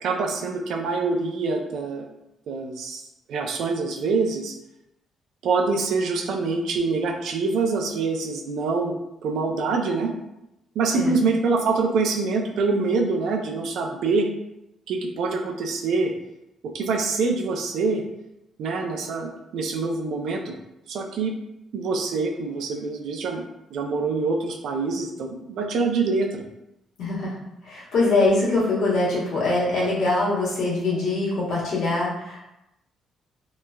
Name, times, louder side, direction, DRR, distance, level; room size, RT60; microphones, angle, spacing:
voice 1, 0.0-2.1 2.5-3.0 3.3-4.5 5.4-8.9 9.2-10.1 10.8-14.3 14.9-16.1 16.7-18.0 18.6-20.5 20.9-21.3 21.7-23.4 23.7-26.4, right 4 dB, 75° right, 2 dB, 0.4 m, -25 dB
voice 2, 27.0-27.3 27.6-32.4, left 2 dB, 80° left, -7 dB, 1.1 m, -23 dB
2.9 x 2.2 x 2.2 m, 0.88 s
cardioid pair, 90°, 0 cm